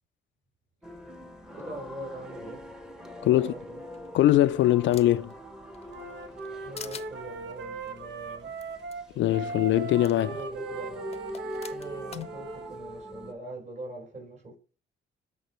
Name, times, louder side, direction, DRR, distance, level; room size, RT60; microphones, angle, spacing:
sound 1, 0.8-13.3, equal, 5° right, 1.2 m, -43 dB
voice 1, 1.5-2.6 3.3-3.8 6.2-8.5 10.1-11.0 11.7-14.6, right 1 dB, 35° right, 4.7 m, -43 dB
voice 2, 3.2-3.5 4.1-5.3 9.2-10.4 12.1-12.3, left 13 dB, 70° left, 0.4 m, -22 dB
sound 2, 3.9-5.3 5.7-6.5 6.8-7.1 8.6-8.7 8.9-9.0 10.0-10.1 11.1-12.3, left 6 dB, 30° left, 0.7 m, -44 dB
Wind instrument woodwind instrument, 5.9-12.7, right 4 dB, 65° right, 1.3 m, -39 dB
13.5 x 5.0 x 3.1 m
cardioid pair, 90°, 20 cm